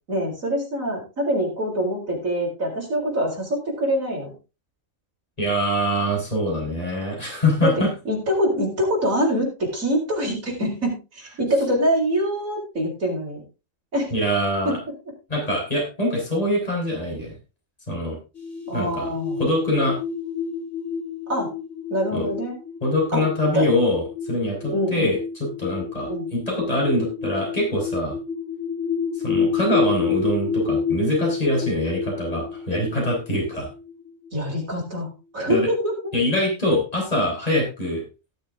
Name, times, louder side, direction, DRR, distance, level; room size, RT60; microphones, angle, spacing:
voice 1, 0.1-4.3 7.6-7.7 8.0-13.4 13.9-14.2 14.6-14.8 18.7-19.4 21.3-21.5 21.9-22.5 23.1-23.2 23.5-23.7 24.7-25.1 26.1-26.3 34.3-35.9, equal, 85° right, -2 dB, 4.8 m, -24 dB
voice 2, 5.4-7.9 14.1-14.8 15.3-17.4 17.9-18.2 18.7-19.1 19.4-20.0 22.1-22.3 22.8-28.2 29.1-33.7 35.5-35.7 36.1-38.0, left 1 dB, 30° left, -2 dB, 5.0 m, -24 dB
sound 1, 18.4-34.7, left 6 dB, 65° left, 3.9 m, -29 dB
18.0 x 6.9 x 3.7 m, 0.29 s
omnidirectional pair, 1.4 m